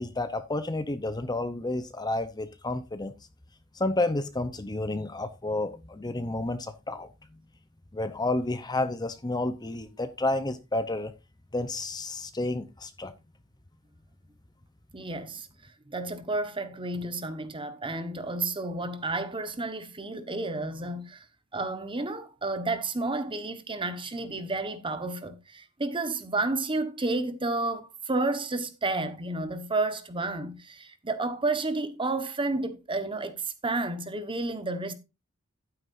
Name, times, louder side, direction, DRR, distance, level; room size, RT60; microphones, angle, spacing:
voice 1, 0.0-3.1 3.7-7.1 7.9-11.1 11.5-13.1, left 2 dB, 20° left, 0.7 m, -30 dB
voice 2, 14.9-15.5 15.9-21.2 21.5-34.9, right 2 dB, 25° right, 1.3 m, -31 dB
11.5 x 9.4 x 2.6 m
head